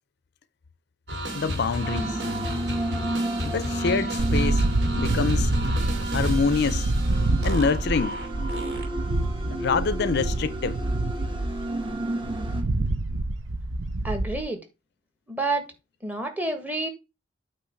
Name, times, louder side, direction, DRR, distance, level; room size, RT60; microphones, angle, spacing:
sound 1, 1.1-9.1, equal, 60° right, 2.3 m, -33 dB
voice 1, 1.3-2.2 3.4-4.6 4.9-5.5 6.1-6.9 7.4-8.2 9.5-10.8, left 5 dB, 55° left, 0.5 m, -26 dB
sound 2, 1.8-12.6, right 2 dB, 25° right, 1.5 m, -32 dB
sound 3, 4.2-14.4, right 2 dB, 80° right, 0.7 m, -27 dB
voice 2, 14.0-14.6 15.3-15.7 16.0-16.9, right 2 dB, 10° right, 1.5 m, -28 dB
8.7 x 3.0 x 6.3 m
head